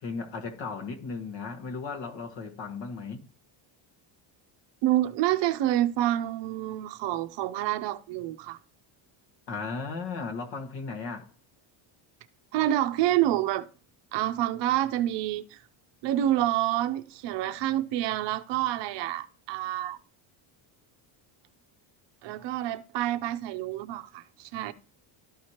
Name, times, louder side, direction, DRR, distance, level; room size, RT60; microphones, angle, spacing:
voice 1, 0.0-3.3 9.5-11.3, left 4 dB, 60° left, 1.6 m, -36 dB
voice 2, 4.8-8.6 12.5-13.7 14.1-15.6 16.0-20.0 22.2-24.7, right 13 dB, 60° right, 0.6 m, -28 dB
13.0 x 4.7 x 2.8 m
cardioid pair, 175°, 50 cm